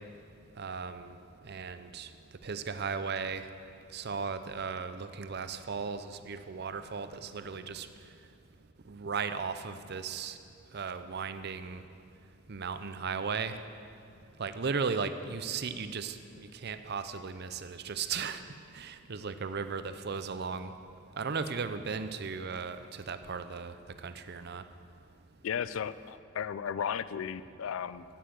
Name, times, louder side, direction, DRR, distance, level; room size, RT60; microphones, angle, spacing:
voice 1, 0.6-1.2 1.4-2.1 2.4-3.4 3.9-7.9 8.9-10.4 10.7-11.8 12.5-13.5 14.4-18.4 18.7-20.7 21.2-23.7 24.0-24.6, right 5 dB, 55° right, 10 dB, 0.6 m, -36 dB
voice 2, 25.4-28.0, left 8 dB, 80° left, 16 dB, 0.4 m, -35 dB
11.5 x 9.2 x 7.6 m, 2.5 s
head